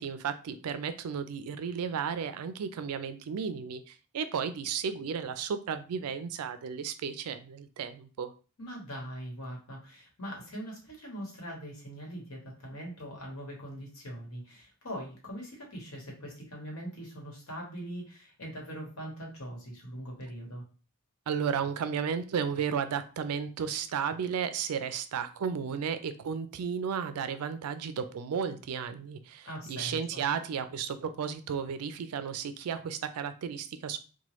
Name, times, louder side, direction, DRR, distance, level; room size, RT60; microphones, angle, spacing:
voice 1, 0.0-8.3 21.3-34.0, right 7 dB, 80° right, 11 dB, 0.4 m, -33 dB
voice 2, 8.6-20.6 29.4-30.2, equal, 65° left, -1 dB, 1.2 m, -42 dB
3.0 x 2.2 x 3.0 m, 0.36 s
head